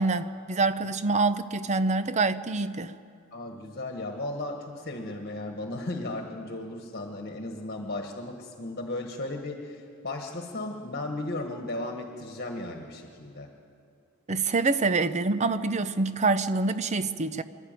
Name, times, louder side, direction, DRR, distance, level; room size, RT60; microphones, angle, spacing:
voice 1, 0.0-2.9 14.3-17.4, right 3 dB, 30° right, 0.6 m, -26 dB
voice 2, 3.3-13.5, left 2 dB, 45° left, 1.5 m, -35 dB
25.5 x 12.0 x 9.0 m
head